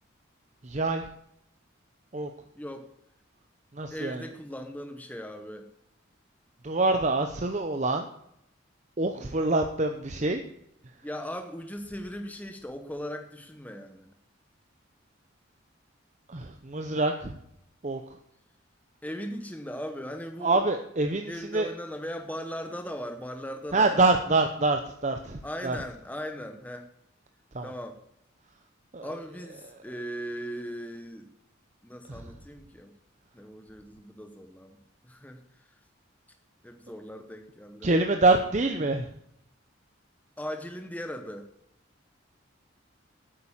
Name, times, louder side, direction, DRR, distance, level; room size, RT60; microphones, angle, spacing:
voice 1, 0.6-1.1 2.1-2.3 3.7-4.3 6.6-8.1 9.0-10.4 16.3-17.4 17.8-18.0 20.4-21.7 23.7-25.8 27.5-27.7 28.9-29.1 29.6-29.8 32.1-32.2 37.8-39.1, right 2 dB, 35° right, 5 dB, 0.7 m, -26 dB
voice 2, 2.6-2.9 3.9-5.7 9.1-9.5 11.0-14.1 19.0-20.6 21.3-24.0 25.4-26.9 27.6-28.0 29.0-31.3 31.8-32.9 33.3-35.7 36.6-37.9 40.4-41.5, equal, 10° left, 5 dB, 0.9 m, -38 dB
9.5 x 8.7 x 7.2 m, 0.75 s
head